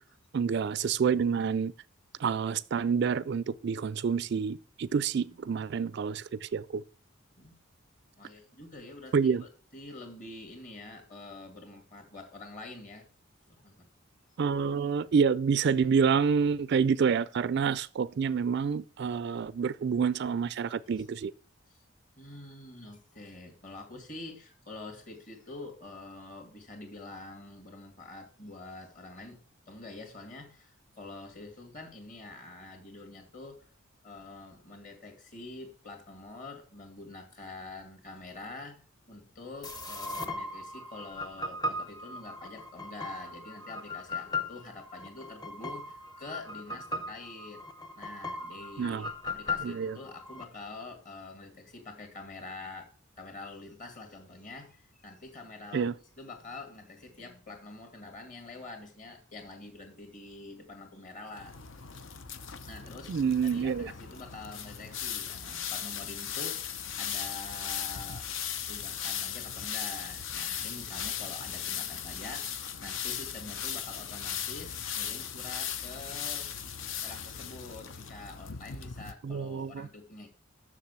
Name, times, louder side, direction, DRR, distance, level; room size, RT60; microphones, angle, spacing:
voice 1, 0.3-1.7 2.2-6.8 9.1-9.4 14.4-21.3 48.8-49.0 49.6-50.0 55.7-55.9 63.1-63.9 79.2-79.9, right 6 dB, 55° right, 0.3 m, -28 dB
voice 2, 8.2-13.1 13.5-13.9 21.7-21.8 22.2-29.4 29.7-33.7 34.0-38.8 39.1-47.6 47.9-52.9 53.2-55.9 56.2-61.6 62.7-63.1 63.4-68.3 68.7-76.5 76.8-80.3, left 2 dB, 40° left, 2.5 m, -46 dB
sound 1, 39.6-50.4, left 2 dB, 20° left, 0.8 m, -38 dB
sound 2, 61.3-79.1, left 8 dB, 65° left, 0.7 m, -37 dB
7.3 x 6.6 x 6.9 m
head